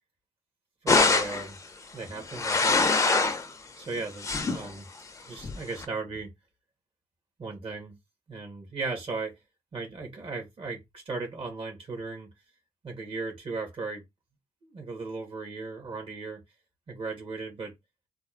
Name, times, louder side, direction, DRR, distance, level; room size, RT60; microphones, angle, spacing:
voice 1, 0.8-1.6 1.9-2.9 3.8-4.9 5.3-6.3 7.4-7.9 8.3-9.4 9.7-12.3 12.8-14.0 14.6-16.4 16.9-17.7, right 3 dB, 45° right, 2.6 m, -36 dB
sound 1, 0.9-1.5 2.2-3.5 3.9-4.7 5.4-5.8, left 3 dB, 25° left, 0.7 m, -24 dB
4.3 x 2.9 x 3.7 m
cardioid pair, 115°, 13 cm